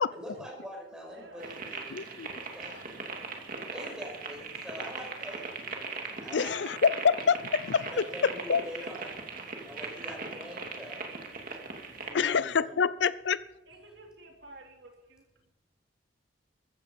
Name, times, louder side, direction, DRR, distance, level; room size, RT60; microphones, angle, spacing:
voice 1, 0.1-2.0 2.5-3.0 3.4-5.5 6.2-6.5 6.9-7.0 7.9-9.3 9.6-11.1 11.9-12.8, equal, 5° right, -1 dB, 5.5 m, -44 dB
voice 2, 1.1-1.6 2.7-3.0 13.7-15.2, right 2 dB, 65° right, 2 dB, 3.0 m, -52 dB
sound 1, 1.4-12.1, right 4 dB, 50° right, 2.6 m, -40 dB
voice 3, 1.9-2.3 6.3-7.9 8.5-8.6 12.1-13.4, left 6 dB, 65° left, 18 dB, 0.5 m, -26 dB
15.0 x 14.0 x 5.3 m, 0.91 s
head